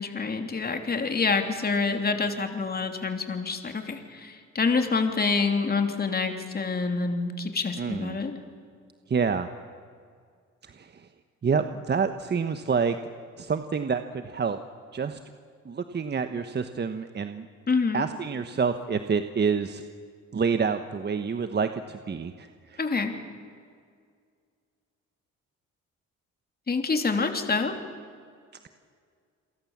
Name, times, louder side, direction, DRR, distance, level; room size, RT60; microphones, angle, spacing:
voice 1, 0.0-8.4 17.7-18.0 22.8-23.1 26.7-27.7, left 4 dB, 30° left, 5 dB, 3.2 m, -27 dB
voice 2, 7.8-8.2 9.1-9.5 10.6-11.1 11.4-13.0 13.4-14.6 14.9-15.2 15.6-17.5 17.9-19.8 20.3-22.8, right 5 dB, 35° right, 9 dB, 1.2 m, -28 dB
29.0 x 23.0 x 7.4 m, 2.1 s
cardioid pair, 90°, 30 cm